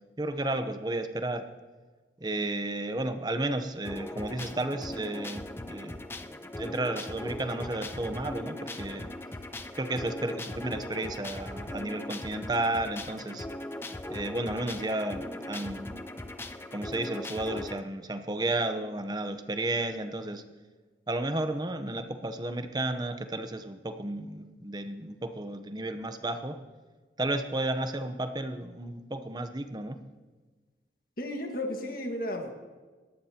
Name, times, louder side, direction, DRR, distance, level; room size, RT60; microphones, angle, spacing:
voice 1, 0.2-1.4 2.2-5.4 5.7-6.0 6.6-9.1 9.7-13.5 14.1-16.0 16.7-20.4 21.1-26.6 27.2-30.0, right 2 dB, 25° right, 8 dB, 0.8 m, -32 dB
sound 1, 3.8-17.8, left 1 dB, 15° left, 0.4 m, -39 dB
voice 2, 31.2-32.5, left 1 dB, 50° left, 2 dB, 1.7 m, -33 dB
20.0 x 14.5 x 2.9 m, 1.3 s
head